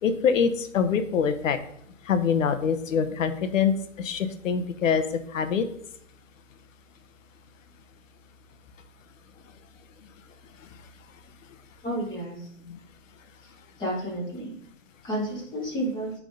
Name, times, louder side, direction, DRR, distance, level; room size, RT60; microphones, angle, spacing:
voice 1, 0.0-1.6 2.1-5.0 5.3-5.7 12.7-12.8, left 6 dB, 80° left, 10 dB, 1.0 m, -24 dB
voice 2, 11.8-12.4 13.8-14.6 15.0-16.1, right 1 dB, 10° left, -6 dB, 2.2 m, -31 dB
10.5 x 3.7 x 3.8 m, 0.68 s
hypercardioid pair, 165°, 38 cm